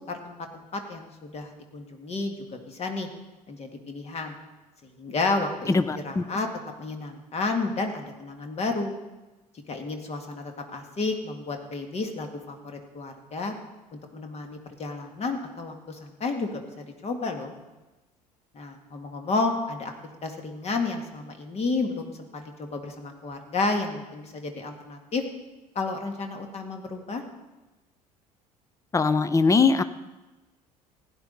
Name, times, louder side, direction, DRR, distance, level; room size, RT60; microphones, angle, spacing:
voice 1, 0.1-3.1 3.5-4.4 4.8-5.7 6.0-6.5 6.8-9.0 9.7-13.5 14.1-17.5 18.5-19.9 20.2-25.2 25.8-27.2, left 3 dB, 35° left, 4 dB, 2.0 m, -31 dB
voice 2, 5.7-6.2 28.9-29.8, left 4 dB, 15° left, 13 dB, 0.7 m, -21 dB
16.0 x 10.5 x 4.1 m, 1.1 s
figure-of-eight pair, 65°, 19 cm